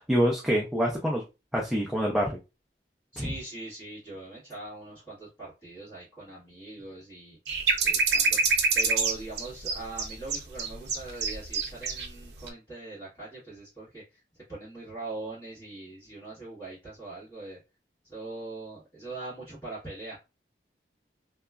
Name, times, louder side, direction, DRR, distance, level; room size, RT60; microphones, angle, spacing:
voice 1, 0.1-1.2 1.5-2.4 3.2-3.3, equal, ahead, -3 dB, 0.4 m, -26 dB
voice 2, 3.1-7.4 7.8-17.6 18.0-20.2, right 2 dB, 20° left, -12 dB, 1.5 m, -41 dB
sound 1, 7.5-12.1 12.4-12.5, right 4 dB, 70° right, 0.5 m, -26 dB
2.9 x 2.3 x 2.3 m, 0.27 s
head